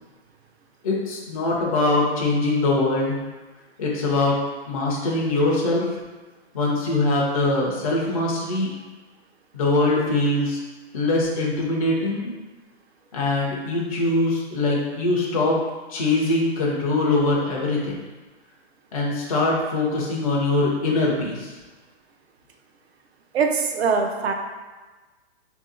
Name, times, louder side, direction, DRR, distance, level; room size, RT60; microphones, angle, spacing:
voice 1, 0.8-3.2 3.8-4.4 4.7-5.8 6.5-8.7 9.5-10.6 10.9-12.4 13.1-15.6 15.9-17.9 18.9-21.5, left 2 dB, 35° left, -4 dB, 0.4 m, -22 dB
voice 2, 23.3-24.3, right 5 dB, 70° right, 4 dB, 0.6 m, -22 dB
2.8 x 2.6 x 3.7 m, 1.3 s
hypercardioid pair, 175°, 33 cm